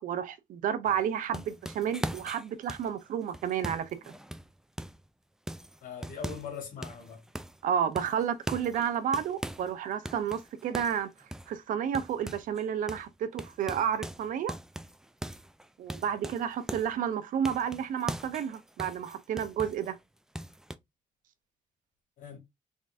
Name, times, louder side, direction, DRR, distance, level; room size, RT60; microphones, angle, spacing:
voice 1, 0.0-4.1 7.6-11.1 11.5-14.5 15.8-20.0, right 8 dB, 80° right, 0.6 m, -31 dB
sound 1, 0.9-5.1 5.5-6.6 6.8-7.6 8.0-9.7 10.0-12.6 12.9-13.1 13.4-17.0 17.4-19.9 20.3-20.8, right 1 dB, 5° right, 0.3 m, -40 dB
voice 2, 5.8-7.2 22.2-22.4, left 6 dB, 90° left, 1.7 m, -41 dB
3.8 x 2.5 x 3.3 m
cardioid pair, 95°, 14 cm